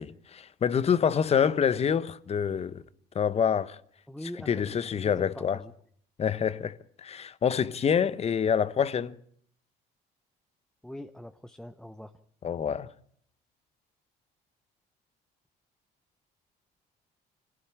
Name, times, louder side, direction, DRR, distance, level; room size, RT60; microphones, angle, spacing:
voice 1, 0.0-2.8 3.1-3.8 4.5-5.6 6.2-9.2 12.4-12.9, left 7 dB, 40° left, 1.0 m, -26 dB
voice 2, 4.1-5.7 10.8-12.1, left 1 dB, 5° left, 0.9 m, -43 dB
25.5 x 16.0 x 8.8 m
cardioid pair, 110°, 17 cm